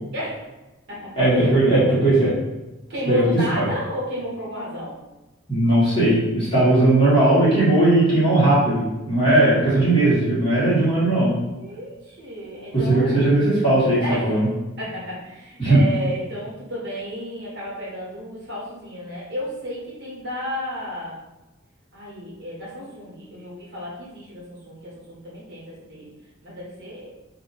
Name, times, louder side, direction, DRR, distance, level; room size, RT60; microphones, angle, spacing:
voice 1, 0.1-0.5 0.9-1.5 2.9-5.0 11.5-13.3 14.0-14.4 14.8-21.2 21.9-26.1 26.4-27.1, equal, 50° right, -6 dB, 1.3 m, -32 dB
voice 2, 1.2-2.3 3.1-3.2 3.5-3.6 5.5-11.3 12.7-14.5 15.6-15.8, right 2 dB, 25° left, -10 dB, 1.3 m, -18 dB
2.7 x 2.6 x 3.9 m, 1.1 s
head